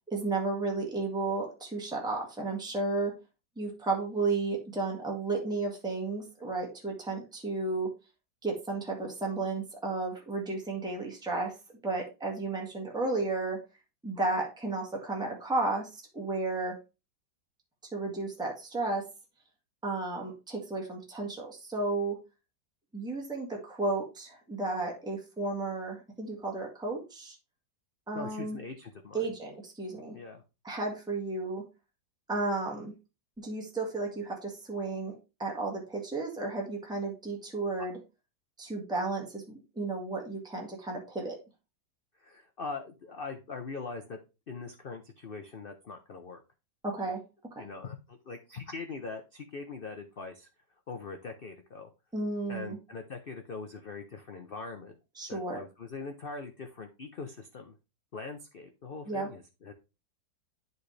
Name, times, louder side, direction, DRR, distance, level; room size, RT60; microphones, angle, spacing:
voice 1, 0.1-3.1 3.5-7.9 8.4-11.6 11.8-13.6 14.0-16.8 17.9-19.1 19.8-22.2 22.9-27.3 28.1-28.6 29.1-30.2 30.6-31.6 32.3-32.9 33.4-35.1 35.4-38.0 38.6-41.4 46.8-47.2 47.5-47.7 52.1-52.8 55.2-55.6 59.1-59.3, right 3 dB, ahead, -1 dB, 1.6 m, -33 dB
voice 2, 28.1-29.3 30.1-30.4 42.2-44.2 44.5-46.4 47.6-50.5 50.9-51.9 52.5-54.9 55.3-57.8 58.1-59.7, left 4 dB, 80° left, 5 dB, 0.5 m, -42 dB
10.5 x 4.1 x 3.2 m, 0.28 s
omnidirectional pair, 2.0 m